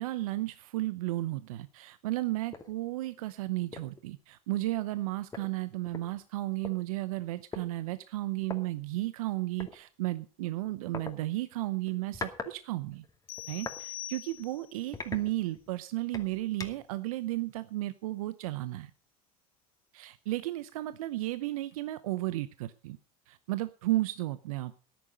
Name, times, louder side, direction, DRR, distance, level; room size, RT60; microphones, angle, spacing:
voice 1, 0.0-13.0 13.5-18.9 19.9-23.0 23.3-24.8, right 17 dB, 75° right, 14 dB, 0.7 m, -34 dB
sound 1, 2.5-2.7 3.2-3.3 3.7-4.0 5.0-5.1 5.3-6.7 7.5-7.7 8.4-8.6 9.6-9.8 10.9-11.1 11.9-12.5 12.9-13.8 14.3-14.4 14.9-15.7 16.1-16.9, left 4 dB, 20° left, 2.4 m, -41 dB
sound 2, 13.3-14.8, left 13 dB, 60° left, 1.5 m, -43 dB
14.0 x 10.5 x 5.4 m, 0.38 s
hypercardioid pair, 80°, 18 cm